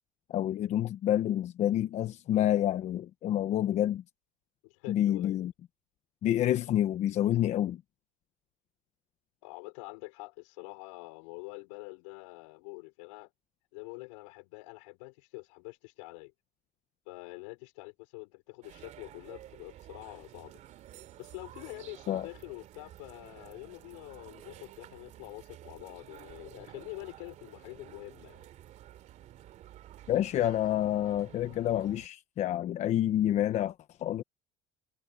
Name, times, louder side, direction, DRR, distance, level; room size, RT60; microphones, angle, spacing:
voice 1, 0.3-4.0 4.9-5.5 6.2-7.8 22.1-22.3 30.1-33.7 34.0-34.2, left 12 dB, 50° left, 1.1 m, -28 dB
voice 2, 4.6-5.4 9.4-13.3 13.7-16.3 17.1-20.5 21.2-28.5, left 29 dB, 85° left, 5.1 m, -46 dB
sound 1, 18.6-32.1, right 13 dB, 55° right, 2.9 m, -52 dB
supercardioid pair, 105°, 15 cm